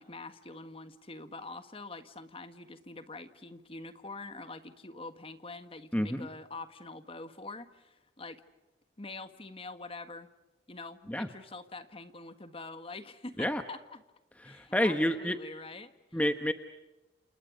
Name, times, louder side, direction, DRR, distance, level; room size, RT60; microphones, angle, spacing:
voice 1, 0.0-8.4 9.0-10.3 10.7-14.0 14.4-16.3, left 3 dB, 30° left, 9 dB, 1.6 m, -45 dB
voice 2, 5.9-6.3 11.1-11.3 13.4-13.6 14.4-15.4 16.1-16.5, equal, 10° left, 7 dB, 1.0 m, -29 dB
29.0 x 29.0 x 5.2 m, 1.0 s
head